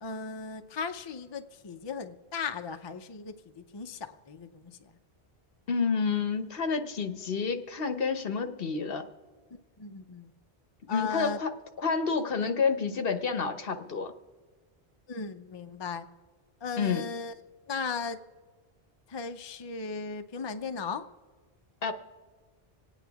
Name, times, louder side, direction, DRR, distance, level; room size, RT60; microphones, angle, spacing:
voice 1, 0.0-4.9 9.8-10.3 10.9-11.4 15.1-16.1 16.6-17.3 17.7-18.2 19.1-21.1, left 5 dB, 35° left, 7 dB, 0.5 m, -36 dB
voice 2, 5.7-9.1 10.9-11.5 11.8-14.1 16.8-17.0 21.8-21.9, left 5 dB, 65° left, 8 dB, 1.1 m, -29 dB
26.5 x 9.1 x 3.5 m, 1.5 s
omnidirectional pair, 1.1 m